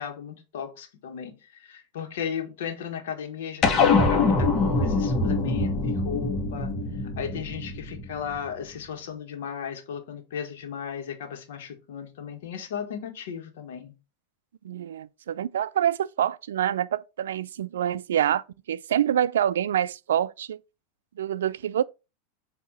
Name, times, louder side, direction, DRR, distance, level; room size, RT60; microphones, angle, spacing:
voice 1, 0.0-6.7 7.2-13.9, left 7 dB, 75° left, 1.5 m, -36 dB
sound 1, 3.6-8.4, left 3 dB, 40° left, 1.4 m, -24 dB
voice 2, 14.6-20.6 21.2-21.8, right 10 dB, 85° right, 0.3 m, -26 dB
8.0 x 2.8 x 4.1 m
hypercardioid pair, 105°, 0 cm